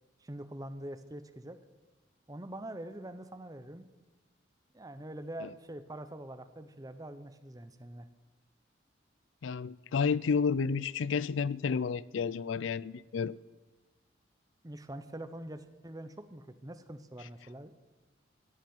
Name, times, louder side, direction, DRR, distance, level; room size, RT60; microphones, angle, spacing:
voice 1, 0.2-1.6 2.3-3.9 4.7-8.1 14.6-17.7, right 1 dB, 20° right, 0.8 m, -44 dB
voice 2, 9.4-13.4, left 5 dB, 80° left, 0.4 m, -31 dB
16.0 x 7.4 x 9.4 m
head